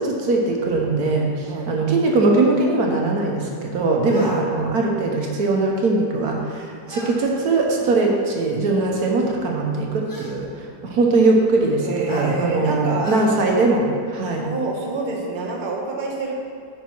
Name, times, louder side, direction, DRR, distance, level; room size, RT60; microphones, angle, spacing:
voice 1, 0.0-14.5, right 3 dB, 65° right, 0 dB, 1.4 m, -21 dB
sound 1, 4.1-4.4 6.9-7.2 8.4-8.5 10.1-10.4 12.1-12.3 13.0-13.3, equal, 15° left, 0.8 m, -33 dB
voice 2, 11.8-13.1 14.4-16.4, right 3 dB, 35° right, -1 dB, 1.0 m, -27 dB
9.2 x 4.0 x 5.9 m, 2.4 s
omnidirectional pair, 1.8 m